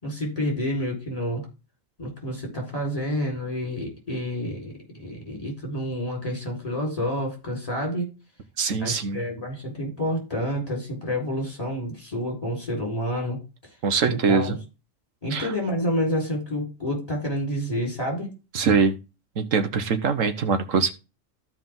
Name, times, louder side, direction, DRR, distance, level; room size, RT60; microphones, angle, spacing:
voice 1, 0.0-1.4 2.0-8.1 8.8-13.4 14.0-14.6 15.2-18.3, equal, 30° left, -1 dB, 4.7 m, -29 dB
voice 2, 8.6-9.2 13.8-14.6 15.3-15.5 18.5-18.9 19.4-20.9, right 5 dB, 85° right, 8 dB, 1.5 m, -23 dB
13.5 x 5.0 x 3.7 m, 0.29 s
omnidirectional pair, 1.3 m